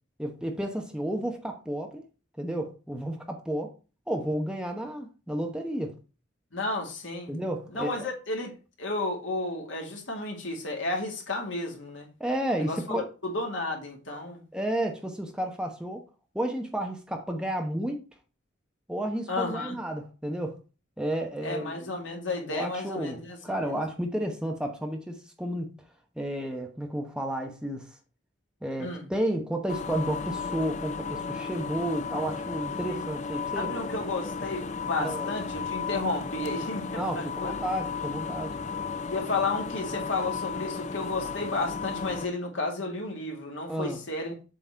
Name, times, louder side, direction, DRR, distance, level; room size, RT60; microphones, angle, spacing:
voice 1, 0.2-2.0 2.4-3.7 4.1-5.9 7.3-8.1 12.2-13.1 14.5-16.0 16.3-18.0 18.9-20.6 21.0-21.9 22.5-25.7 26.2-27.9 28.6-33.7 35.0-35.3 36.9-38.6 43.7-44.0, right 1 dB, 5° right, 1.0 m, -32 dB
voice 2, 6.5-7.3 7.7-8.5 8.8-12.1 12.6-14.4 19.3-19.8 21.4-23.4 23.6-23.8 28.8-29.0 32.9-33.0 33.6-37.6 39.1-44.3, left 2 dB, 85° left, 2.1 m, -32 dB
sound 1, 29.7-42.3, left 5 dB, 35° left, 0.4 m, -34 dB
7.6 x 4.0 x 4.5 m
head